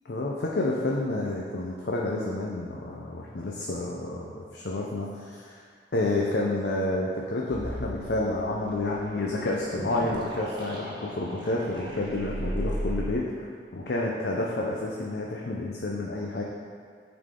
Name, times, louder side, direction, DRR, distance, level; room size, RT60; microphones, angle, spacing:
voice 1, 0.0-5.6 5.9-13.5 13.7-16.4, left 2 dB, 65° left, -3 dB, 0.6 m, -29 dB
sound 1, 7.5-13.1, equal, 25° right, 1.0 m, -36 dB
9.4 x 4.0 x 3.7 m, 2.1 s
head